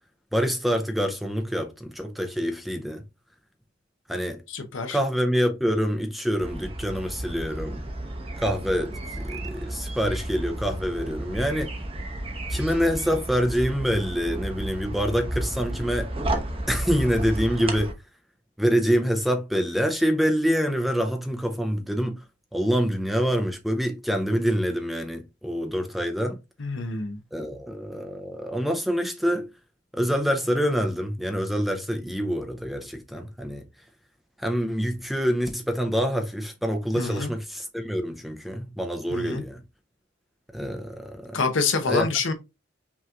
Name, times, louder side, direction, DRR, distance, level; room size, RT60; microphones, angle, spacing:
voice 1, 0.3-3.0 4.1-4.4 4.9-7.8 8.4-11.7 12.5-16.1 16.7-17.9 18.6-22.2 22.5-26.4 27.3-29.5 29.9-33.6 34.4-39.6 40.5-41.4 41.9-42.1, equal, ahead, 0.5 m, -26 dB
voice 2, 4.5-5.0 26.6-27.2 37.0-37.3 39.1-39.4 41.3-42.3, left 4 dB, 70° left, 0.9 m, -27 dB
sound 1, 6.4-17.9, right 1 dB, 30° right, 0.8 m, -32 dB
5.6 x 3.0 x 2.4 m
head